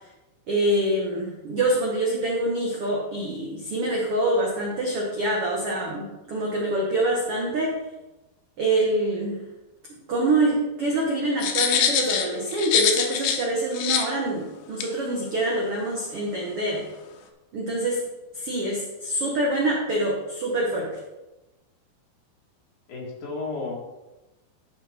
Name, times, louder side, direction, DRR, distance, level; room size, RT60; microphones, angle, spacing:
voice 1, 0.5-7.8 8.6-9.4 9.9-16.8 17.5-18.0 18.3-20.9, right 1 dB, 65° right, -2 dB, 1.4 m, -25 dB
sound 1, 11.4-13.4 13.7-14.0 14.8-14.9, left 7 dB, 75° left, 1.9 m, -23 dB
voice 2, 22.9-23.7, left 3 dB, 55° left, -2 dB, 3.1 m, -32 dB
12.0 x 5.2 x 4.3 m, 1.0 s
omnidirectional pair, 4.5 m